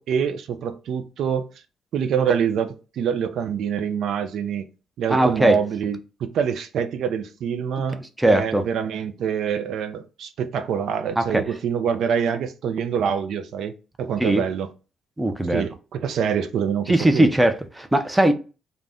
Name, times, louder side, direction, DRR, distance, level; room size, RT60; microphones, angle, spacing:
voice 1, 0.0-1.5 1.9-4.7 5.0-14.7 15.5-17.3, right 7 dB, 75° right, 0.3 m, -25 dB
voice 2, 5.1-5.6 8.2-8.6 11.2-11.4 14.2-14.4 15.2-15.7 16.9-18.3, right 1 dB, 10° right, 0.4 m, -19 dB
2.5 x 2.1 x 3.4 m
cardioid pair, 90°, 0 cm